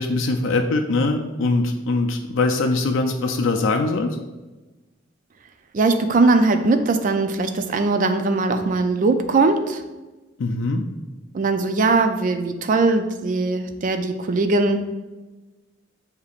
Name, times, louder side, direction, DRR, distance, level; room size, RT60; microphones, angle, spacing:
voice 1, 0.0-4.2 10.4-10.8, left 3 dB, 75° left, 3 dB, 0.4 m, -22 dB
voice 2, 5.7-9.8 11.3-14.8, right 3 dB, 45° right, 8 dB, 0.4 m, -20 dB
6.6 x 2.9 x 2.4 m, 1.2 s
head